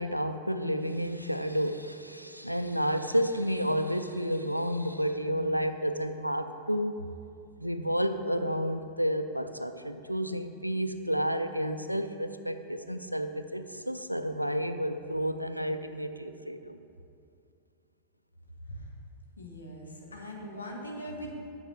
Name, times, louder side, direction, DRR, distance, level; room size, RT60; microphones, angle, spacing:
voice 1, 0.0-7.0 7.6-16.8, equal, 90° right, 9 dB, 0.4 m, -31 dB
voice 2, 19.4-21.3, equal, 75° left, 0 dB, 1.2 m, -41 dB
8.1 x 4.6 x 7.1 m, 2.5 s
figure-of-eight pair, 90°, 0 cm